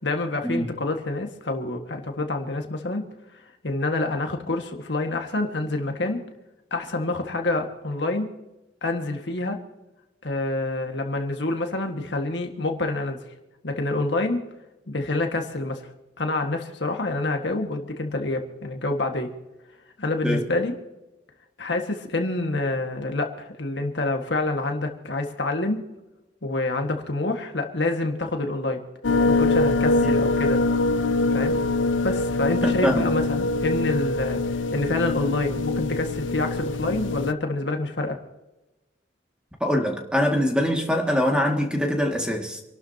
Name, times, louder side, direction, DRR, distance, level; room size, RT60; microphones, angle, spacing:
voice 1, 0.0-3.0 3.6-6.2 6.7-8.3 8.8-9.6 10.2-13.2 13.6-14.5 14.9-15.9 16.2-19.3 20.0-20.8 21.6-25.8 26.4-28.8 29.3-30.6 31.3-31.6 32.0-38.2, left 2 dB, 70° left, 1.8 m, -27 dB
sound 1, 29.0-37.3, left 3 dB, 85° left, 0.5 m, -24 dB
voice 2, 32.6-33.1 39.6-42.6, equal, 5° right, 2.1 m, -23 dB
27.5 x 12.0 x 2.9 m
head